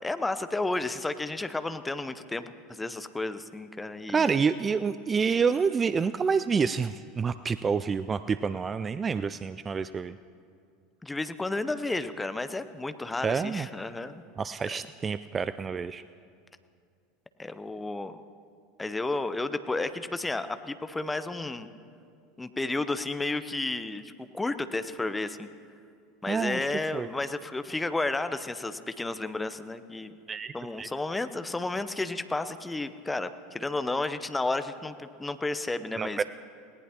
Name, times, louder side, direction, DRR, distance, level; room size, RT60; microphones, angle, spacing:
voice 1, 0.0-4.3 11.0-14.2 17.4-18.2 18.8-21.7 22.4-24.0 24.3-25.5 26.2-30.1 30.5-36.2, left 2 dB, 10° left, 12 dB, 0.7 m, -32 dB
voice 2, 4.1-10.2 13.2-13.7 14.4-16.0 26.3-26.7 26.9-27.1 30.3-30.9 36.0-36.2, right 5 dB, 25° right, 13 dB, 0.3 m, -28 dB
19.0 x 18.0 x 2.9 m, 2.3 s
figure-of-eight pair, 80°, 0 cm